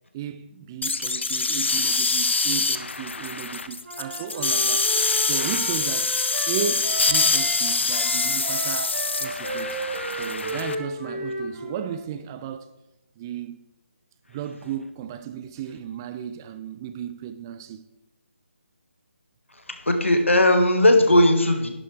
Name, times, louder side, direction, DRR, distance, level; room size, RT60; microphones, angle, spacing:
voice 1, 0.1-4.9 5.2-6.1 6.5-9.8 10.1-12.7 13.2-13.7 14.3-17.8, right 8 dB, 20° right, 0.3 m, -34 dB
sound 1, 0.8-10.7, left 4 dB, 70° left, 0.7 m, -25 dB
Wind instrument woodwind instrument, 3.8-7.6 7.9-12.0, right 2 dB, 65° right, 2.4 m, -34 dB
voice 2, 19.7-21.7, left 1 dB, 85° left, 1.7 m, -18 dB
11.0 x 9.3 x 3.3 m
figure-of-eight pair, 150°, 7 cm